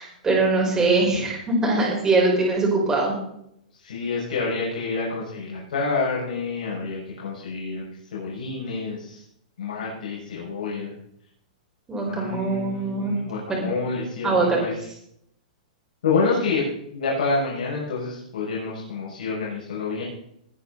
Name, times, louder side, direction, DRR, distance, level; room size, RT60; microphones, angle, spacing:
voice 1, 0.0-3.1 11.9-13.2 13.5-13.6 14.2-14.6, right 3 dB, 10° right, -2 dB, 5.1 m, -22 dB
voice 2, 0.6-1.2 3.8-7.8 8.1-9.2 9.6-10.9 12.0-14.8 16.0-16.7 16.9-20.0, left 4 dB, 80° left, -5 dB, 6.3 m, -28 dB
20.0 x 9.8 x 4.1 m, 0.73 s
hypercardioid pair, 155°, 4 cm